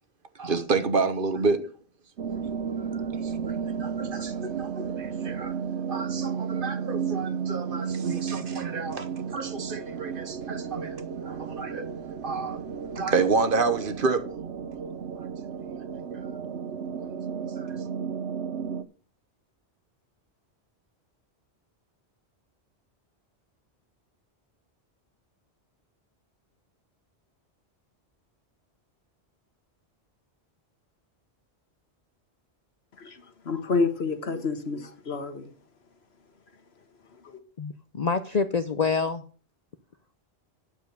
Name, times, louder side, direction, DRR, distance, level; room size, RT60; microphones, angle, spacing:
voice 1, 0.4-1.7 2.4-2.5 3.1-5.5 5.9-11.9 12.2-12.6 12.9-14.2 16.2-16.4 17.0-17.2 17.6-17.7, right 4 dB, 55° right, 1.1 m, -29 dB
sound 1, 2.2-18.8, right 6 dB, 75° right, 1.1 m, -33 dB
voice 2, 33.0-35.5 37.2-37.4, left 4 dB, 70° left, 1.6 m, -29 dB
voice 3, 37.6-39.2, left 5 dB, 45° left, 0.7 m, -26 dB
9.2 x 6.9 x 6.6 m
omnidirectional pair, 1.1 m